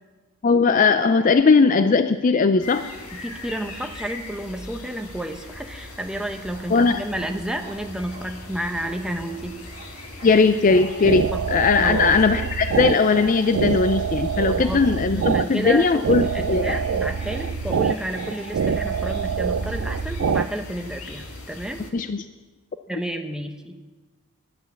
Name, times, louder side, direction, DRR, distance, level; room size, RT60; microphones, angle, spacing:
voice 1, 0.4-2.9 6.7-7.0 10.2-16.8 21.9-22.2, left 4 dB, 35° left, 9 dB, 0.4 m, -19 dB
sound 1, 2.6-21.9, left 2 dB, 75° left, 1.7 m, -40 dB
voice 2, 3.1-9.6 11.3-11.5 11.8-12.2 14.5-21.8 22.9-23.8, right 1 dB, 5° right, 5 dB, 0.8 m, -31 dB
Bark, 5.8-12.9, right 1 dB, 30° right, 2.1 m, -46 dB
sound 2, 10.7-20.5, right 6 dB, 60° right, 0.3 m, -25 dB
11.5 x 9.4 x 7.2 m, 1.2 s
head